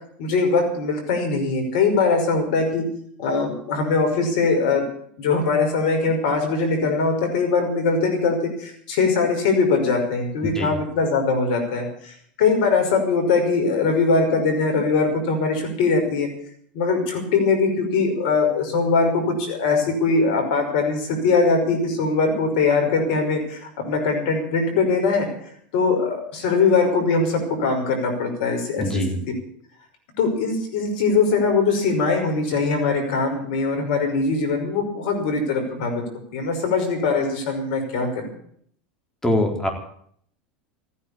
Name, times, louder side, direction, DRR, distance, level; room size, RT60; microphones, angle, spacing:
voice 1, 0.2-2.8 3.2-4.8 5.2-16.3 16.7-25.3 25.7-29.0 30.2-36.0 36.3-38.2, left 4 dB, 70° left, 4 dB, 5.6 m, -21 dB
voice 2, 10.4-10.7 28.8-29.1 39.2-39.7, left 1 dB, 10° left, 3 dB, 4.1 m, -23 dB
15.5 x 9.8 x 8.6 m, 0.63 s
hypercardioid pair, 105°, 5 cm